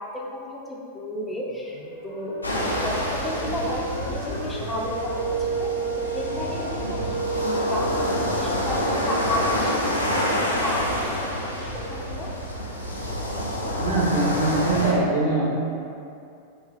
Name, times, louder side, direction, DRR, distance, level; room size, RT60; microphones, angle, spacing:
voice 1, 0.0-1.8 2.0-9.7 10.1-12.3, left 1 dB, 10° left, -3 dB, 0.3 m, -33 dB
sound 1, 1.4-9.1, right 3 dB, 60° right, 0.8 m, -31 dB
sound 2, 2.4-14.9, left 1 dB, 85° left, 0.3 m, -28 dB
voice 2, 13.8-15.5, right 2 dB, 85° right, -10 dB, 1.2 m, -22 dB
3.1 x 2.6 x 2.2 m, 2.6 s
figure-of-eight pair, 90°, 0 cm